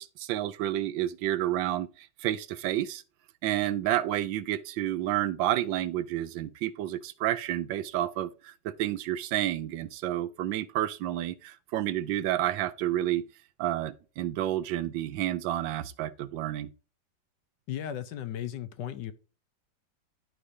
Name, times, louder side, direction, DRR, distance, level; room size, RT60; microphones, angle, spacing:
voice 1, 0.0-3.0 3.4-13.2 13.6-16.7, right 13 dB, 85° right, 1.4 m, -30 dB
voice 2, 17.7-19.1, left 10 dB, 70° left, 1.3 m, -35 dB
11.0 x 4.9 x 2.7 m
omnidirectional pair, 2.0 m